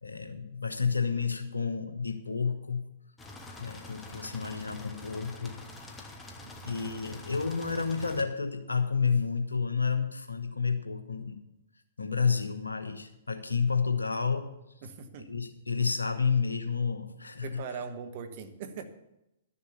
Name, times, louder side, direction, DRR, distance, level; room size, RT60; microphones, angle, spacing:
voice 1, 0.0-2.9 3.6-6.0 6.6-11.4 12.0-14.5 15.3-17.6, left 5 dB, 75° left, 8 dB, 1.2 m, -30 dB
sound 1, 3.2-8.2, left 2 dB, 10° left, 1.2 m, -46 dB
voice 2, 14.8-15.3 17.4-18.8, right 6 dB, 40° right, 8 dB, 1.2 m, -40 dB
11.5 x 6.8 x 7.1 m, 0.88 s
figure-of-eight pair, 115°, 0 cm